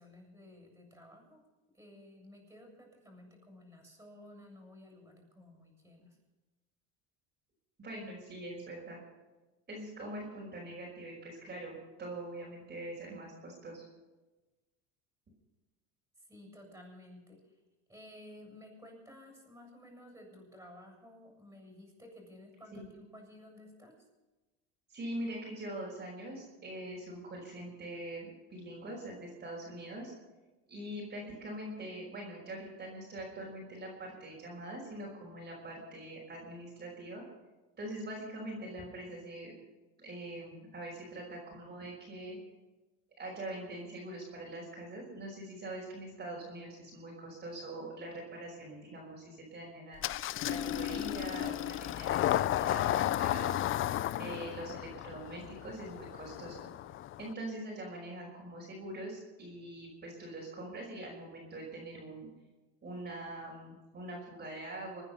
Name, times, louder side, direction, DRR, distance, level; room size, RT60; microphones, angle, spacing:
voice 1, 0.0-1.4 1.7-6.2 16.3-17.6 17.9-24.1, left 1 dB, 10° right, 1 dB, 7.2 m, -54 dB
voice 2, 7.8-9.0 9.7-13.9 22.7-22.8 24.9-30.1 30.7-37.2 37.8-39.5 40.0-42.4 43.2-50.0 50.4-53.5 54.2-56.7 57.2-62.3 62.8-65.0, right 1 dB, 30° right, -3 dB, 5.4 m, -43 dB
Engine starting, 50.0-57.3, left 13 dB, 40° left, 0.5 m, -33 dB
25.0 x 9.9 x 5.5 m, 1.2 s
supercardioid pair, 110°, 33 cm